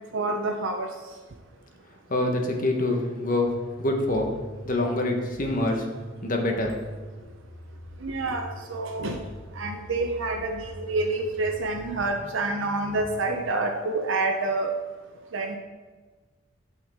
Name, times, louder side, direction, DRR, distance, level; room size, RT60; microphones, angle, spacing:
voice 1, 0.1-0.9 8.0-9.2 9.6-14.7 15.3-15.6, right 2 dB, 85° right, 3 dB, 0.7 m, -28 dB
voice 2, 2.1-3.5 3.8-4.3 4.6-5.9 6.2-6.8, left 2 dB, 45° left, 2 dB, 1.1 m, -25 dB
sound 1, 3.4-13.4, right 1 dB, 25° right, 2.3 m, -43 dB
8.9 x 6.4 x 3.6 m, 1.4 s
head